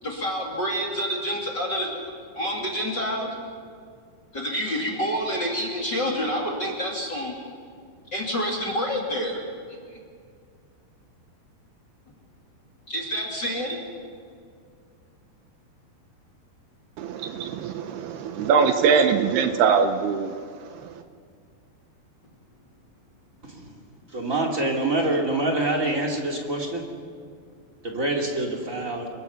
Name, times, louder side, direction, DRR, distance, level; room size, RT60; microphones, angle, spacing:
voice 1, 0.0-1.9 2.3-3.3 4.3-7.4 8.1-9.4 9.7-9.8 12.9-13.8, equal, 30° left, -1 dB, 2.6 m, -28 dB
voice 2, 17.0-21.0, right 6 dB, 75° right, 7 dB, 2.8 m, -23 dB
voice 3, 24.1-26.8 27.8-29.1, right 2 dB, 25° right, 0 dB, 2.2 m, -26 dB
27.5 x 22.5 x 5.8 m, 2.2 s
omnidirectional pair, 4.9 m